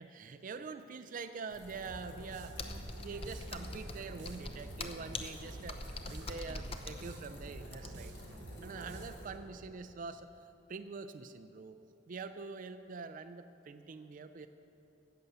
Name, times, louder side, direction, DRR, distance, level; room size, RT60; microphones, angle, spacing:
voice 1, 0.0-8.1 8.6-11.8 12.1-14.5, right 4 dB, 45° right, 9 dB, 0.4 m, -45 dB
sound 1, 1.5-9.3, equal, 80° left, 3.3 m, -52 dB
sound 2, 1.9-9.5, right 1 dB, 70° right, 1.1 m, -49 dB
Computer keyboard, 2.6-8.2, left 3 dB, 30° left, 0.8 m, -44 dB
17.0 x 6.8 x 6.8 m, 2.9 s
head